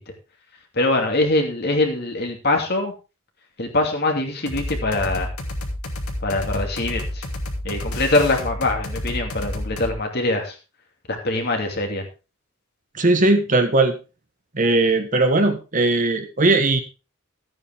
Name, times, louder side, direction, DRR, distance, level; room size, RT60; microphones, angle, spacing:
voice 1, 0.7-2.9 3.6-5.3 6.2-7.2 7.6-10.6 11.1-12.1, left 2 dB, 50° left, 3 dB, 2.6 m, -23 dB
sound 1, 4.5-10.0, left 1 dB, 90° left, 2.6 m, -30 dB
voice 2, 12.9-14.0 14.5-16.8, right 2 dB, 35° right, 6 dB, 1.3 m, -18 dB
14.0 x 9.1 x 3.5 m, 0.31 s
head